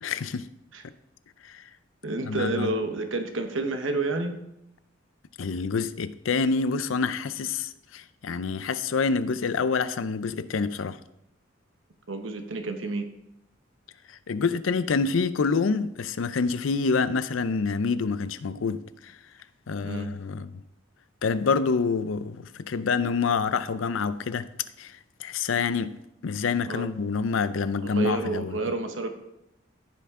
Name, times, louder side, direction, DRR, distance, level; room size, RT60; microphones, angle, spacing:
voice 1, 0.0-0.5 1.4-1.6 2.3-2.7 5.4-11.0 14.3-19.1 19.7-20.5 21.2-24.5 24.8-26.0 26.2-28.6, left 5 dB, 85° left, 0.5 m, -27 dB
voice 2, 2.0-4.3 12.1-13.1 19.8-20.1 26.7-26.9 27.8-29.2, right 2 dB, 80° right, 1.1 m, -29 dB
14.0 x 5.8 x 3.7 m
head